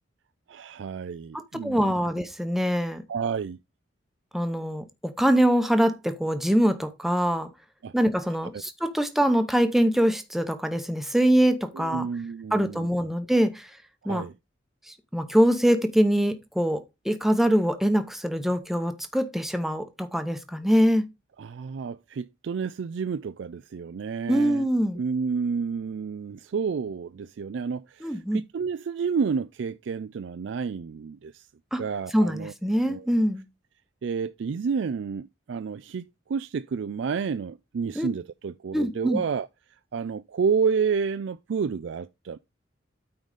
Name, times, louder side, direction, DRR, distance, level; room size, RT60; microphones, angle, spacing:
voice 1, 0.5-1.9 3.1-3.6 7.8-7.9 11.7-12.9 14.0-14.3 21.4-24.7 24.9-31.5 31.8-33.1 34.0-39.5 39.9-42.4, right 5 dB, 75° right, 0.4 m, -30 dB
voice 2, 1.6-3.0 4.3-7.5 7.9-12.1 12.5-13.7 14.1-14.2 15.1-21.0 24.3-25.0 28.0-28.4 31.7-31.8 32.1-33.4 38.0-38.1 38.7-39.2, equal, ahead, 0.8 m, -23 dB
8.9 x 3.9 x 4.9 m
head